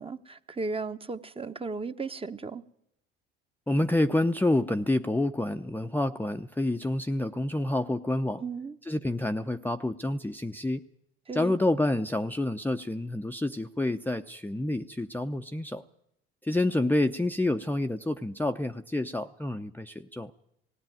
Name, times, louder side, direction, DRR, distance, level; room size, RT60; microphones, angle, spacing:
voice 1, 0.0-2.6 8.4-8.8 11.3-11.5, right 4 dB, 20° right, 9 dB, 1.0 m, -35 dB
voice 2, 3.7-8.4 8.9-10.8 11.3-15.8 16.4-20.3, left 1 dB, 5° left, 5 dB, 0.7 m, -28 dB
18.5 x 16.0 x 9.1 m, 0.77 s
hypercardioid pair, 65°, 29 cm